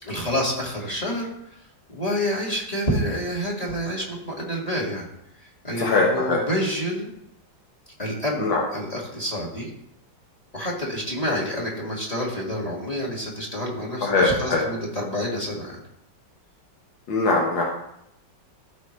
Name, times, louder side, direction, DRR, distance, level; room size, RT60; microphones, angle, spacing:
voice 1, 0.0-1.3 1.9-5.0 5.6-7.1 8.0-9.7 10.5-15.8, equal, 20° left, -2 dB, 1.9 m, -28 dB
voice 2, 5.8-6.4 8.4-8.6 14.0-14.6 17.1-17.6, left 3 dB, 85° left, -2 dB, 2.0 m, -21 dB
14.0 x 5.1 x 3.2 m, 0.78 s
omnidirectional pair, 2.0 m